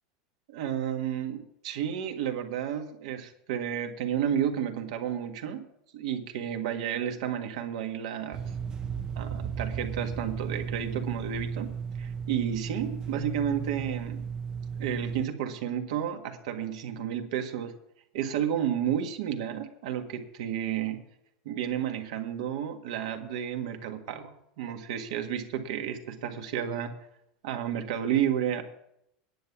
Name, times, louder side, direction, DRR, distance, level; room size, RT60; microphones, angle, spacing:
voice 1, 0.5-5.6 5.9-8.4 9.2-11.7 12.0-14.3 14.8-17.7 18.1-21.0 21.5-24.3 24.6-26.9 27.4-28.6, right 9 dB, 70° right, 5 dB, 1.7 m, -31 dB
sound 1, 8.3-15.3, right 6 dB, 20° right, 0.5 m, -35 dB
10.5 x 8.4 x 7.2 m, 0.75 s
supercardioid pair, 175°, 4 cm